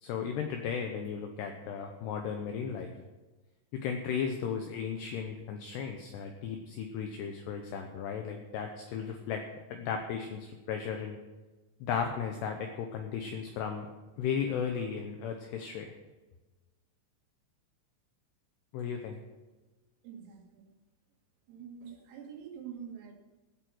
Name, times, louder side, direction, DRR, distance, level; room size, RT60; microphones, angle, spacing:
voice 1, 0.0-2.9 3.7-9.4 9.7-11.2 11.8-13.9 14.2-15.9 18.7-19.2, left 7 dB, 75° left, 4 dB, 2.6 m, -35 dB
voice 2, 20.0-20.7 21.5-23.1, right 7 dB, 90° right, 2 dB, 4.5 m, -46 dB
16.0 x 8.2 x 6.3 m, 1.2 s
omnidirectional pair, 5.7 m